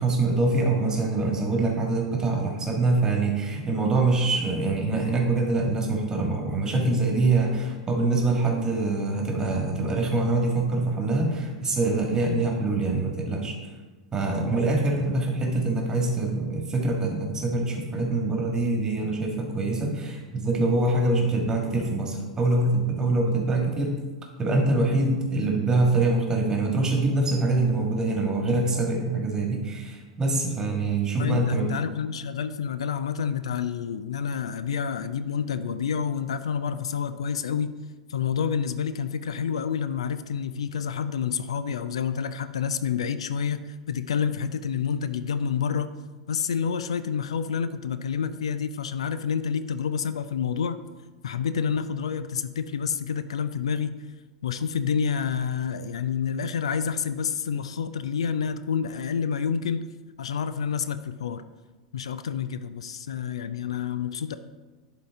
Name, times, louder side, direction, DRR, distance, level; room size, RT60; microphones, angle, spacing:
voice 1, 0.0-13.5 14.1-23.9 24.4-31.7, right 2 dB, 20° right, 1 dB, 1.6 m, -24 dB
voice 2, 31.2-37.7 38.1-45.9 46.3-50.8 51.2-53.9 54.4-59.9 60.2-61.4 61.9-64.4, left 7 dB, 70° left, 12 dB, 0.3 m, -28 dB
11.5 x 3.8 x 3.6 m, 1.3 s
figure-of-eight pair, 90°, 3 cm